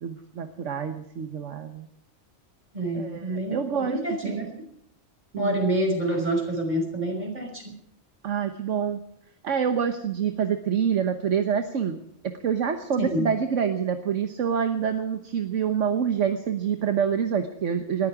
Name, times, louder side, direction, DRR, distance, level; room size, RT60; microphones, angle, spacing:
voice 1, 0.0-1.9 2.9-4.4 5.3-5.6 8.2-9.0 9.4-12.0 12.4-18.1, right 7 dB, 65° right, 7 dB, 1.4 m, -26 dB
voice 2, 2.7-4.7 5.3-7.7 13.0-13.3, right 1 dB, 35° right, 2 dB, 5.6 m, -27 dB
19.5 x 14.0 x 4.9 m, 0.75 s
omnidirectional pair, 1.4 m